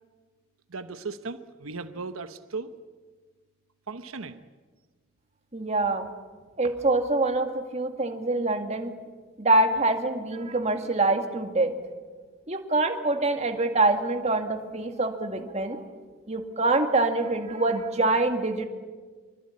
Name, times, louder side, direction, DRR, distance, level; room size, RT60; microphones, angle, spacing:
voice 1, 0.7-2.7 3.9-4.4, right 4 dB, 85° right, 9 dB, 1.0 m, -37 dB
voice 2, 5.5-6.1 6.6-8.9 9.4-11.7 12.5-15.8 16.3-18.7, right 2 dB, 30° right, 5 dB, 2.0 m, -25 dB
25.5 x 24.0 x 8.6 m, 1.4 s
head